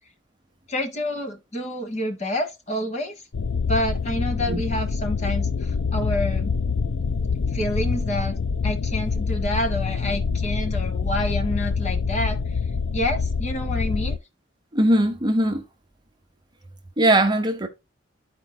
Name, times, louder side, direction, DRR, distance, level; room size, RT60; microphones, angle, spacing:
voice 1, 0.7-3.2 3.7-6.5 7.5-8.4 8.6-12.6 12.9-14.2, left 1 dB, 35° left, 1.4 m, -28 dB
sound 1, 3.3-14.2, left 5 dB, 85° left, 0.5 m, -25 dB
voice 2, 14.7-15.6 17.0-17.7, right 1 dB, 25° right, 0.9 m, -20 dB
12.5 x 4.6 x 2.2 m
head